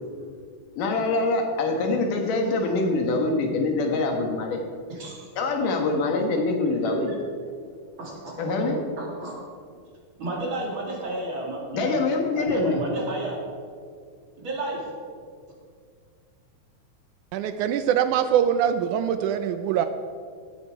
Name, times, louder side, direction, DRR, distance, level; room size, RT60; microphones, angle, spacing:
voice 1, 0.8-4.6 5.4-7.1 8.4-8.8 11.7-12.8, left 3 dB, 80° left, 3 dB, 2.9 m, -24 dB
voice 2, 4.9-5.3 8.0-8.4 9.0-9.3 10.2-13.4 14.4-14.8, right 1 dB, 40° right, -2 dB, 2.7 m, -32 dB
voice 3, 17.3-19.9, right 9 dB, 80° right, 9 dB, 1.9 m, -23 dB
17.0 x 8.3 x 4.6 m, 2.1 s
omnidirectional pair, 3.7 m